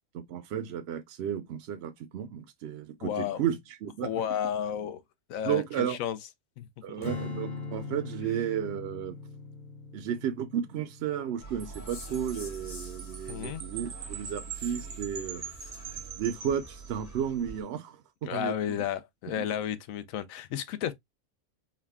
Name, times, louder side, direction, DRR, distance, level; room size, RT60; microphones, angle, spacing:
voice 1, 0.1-4.1 5.4-6.0 6.8-9.2 9.9-15.7 16.2-18.8 19.4-19.5, right 9 dB, 65° right, 0.7 m, -33 dB
voice 2, 3.0-3.4 4.0-5.0 5.3-6.2 6.6-6.7 13.3-13.6 18.2-20.9, left 9 dB, 80° left, 1.0 m, -32 dB
Strum, 7.0-13.4, left 3 dB, 35° left, 1.1 m, -41 dB
sound 1, 11.4-17.6, right 3 dB, 60° left, 2.2 m, -44 dB
Wind chime, 11.6-17.3, right 7 dB, 85° right, 1.3 m, -43 dB
4.8 x 2.1 x 3.5 m
omnidirectional pair, 1.4 m